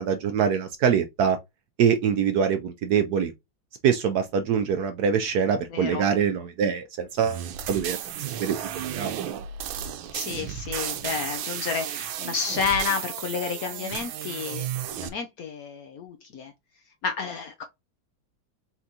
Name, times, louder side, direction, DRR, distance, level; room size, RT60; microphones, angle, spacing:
voice 1, 0.0-1.4 1.8-3.3 3.8-8.0 8.3-9.1, right 7 dB, 70° right, 1.0 m, -24 dB
voice 2, 5.7-6.1 10.1-14.7 15.0-16.5 17.0-17.6, left 5 dB, 65° left, 0.9 m, -30 dB
sound 1, 7.2-15.1, right 10 dB, 90° right, 1.4 m, -33 dB
4.4 x 3.7 x 2.7 m
omnidirectional pair, 2.1 m